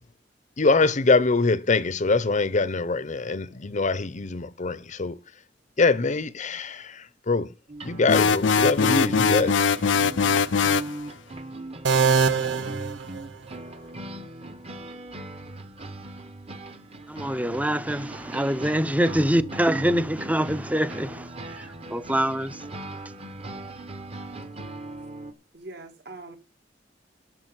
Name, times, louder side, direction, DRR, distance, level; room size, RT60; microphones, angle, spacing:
voice 1, 0.6-5.2 5.8-7.5 7.8-9.6, left 3 dB, 40° left, 0.7 m, -23 dB
sound 1, 7.7-25.3, right 2 dB, 35° right, 1.2 m, -39 dB
sound 2, 8.1-10.9, left 5 dB, 85° left, 0.6 m, -21 dB
sound 3, 11.8-13.7, right 5 dB, 85° right, 0.9 m, -24 dB
voice 2, 17.1-22.6, right 1 dB, 10° right, 0.7 m, -25 dB
voice 3, 25.5-26.4, right 2 dB, 60° right, 2.3 m, -42 dB
11.0 x 6.5 x 7.9 m
head